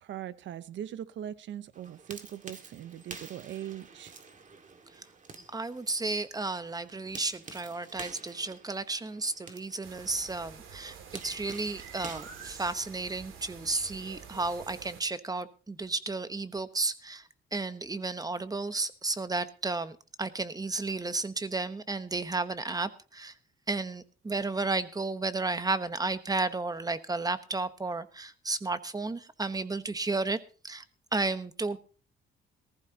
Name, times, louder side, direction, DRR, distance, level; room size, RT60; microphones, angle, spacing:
voice 1, 0.0-4.1, right 11 dB, 70° right, 14 dB, 0.9 m, -40 dB
sound 1, 1.7-13.2, right 4 dB, 40° right, 2.0 m, -49 dB
voice 2, 5.5-23.3 23.7-30.4 30.6-30.8 31.1-31.8, right 3 dB, 20° right, 12 dB, 1.1 m, -33 dB
sound 2, 9.8-15.0, right 7 dB, 90° right, 2.5 m, -47 dB
19.0 x 14.5 x 2.9 m, 0.38 s
cardioid pair, 90°, 20 cm